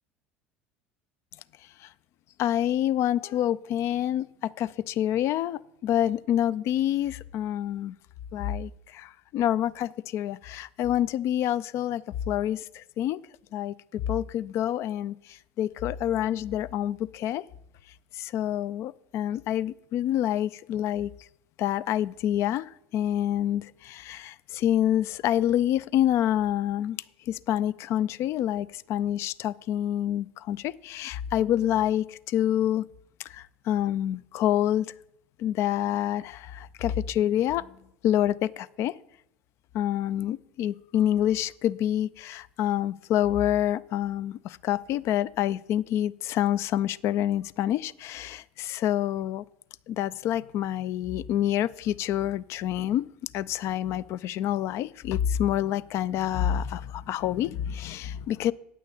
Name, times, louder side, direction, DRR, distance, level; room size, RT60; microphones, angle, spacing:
voice 1, 2.4-7.9 8.3-13.2 13.5-17.4 18.1-21.1 21.6-27.0 27.3-32.9 33.2-34.9 35.4-37.7 38.0-38.9 39.7-49.4 49.9-53.1 53.3-58.5, left 11 dB, 55° left, 19 dB, 0.4 m, -27 dB
8.9 x 6.3 x 8.4 m, 0.79 s
hypercardioid pair, 75°, 6 cm